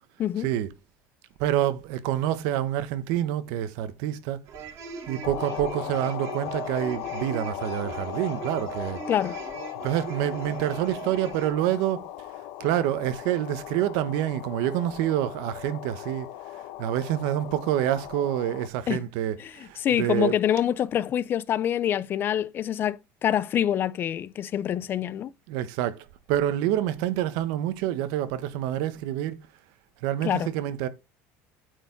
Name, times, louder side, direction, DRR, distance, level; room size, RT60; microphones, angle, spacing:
voice 1, 0.4-0.7 1.4-4.4 5.1-9.0 9.8-12.1 12.6-16.3 16.5-20.4 25.5-29.4 30.0-30.9, right 12 dB, 70° right, 1.0 m, -27 dB
sound 1, 4.5-11.5, right 6 dB, 45° right, 2.5 m, -39 dB
sound 2, 5.2-18.7, left 14 dB, 70° left, 0.9 m, -38 dB
voice 2, 9.1-9.4 18.9-19.0 19.4-19.5 19.8-25.3 30.2-30.5, left 10 dB, 30° left, 0.4 m, -26 dB
9.0 x 4.6 x 4.5 m
cardioid pair, 160°, 7 cm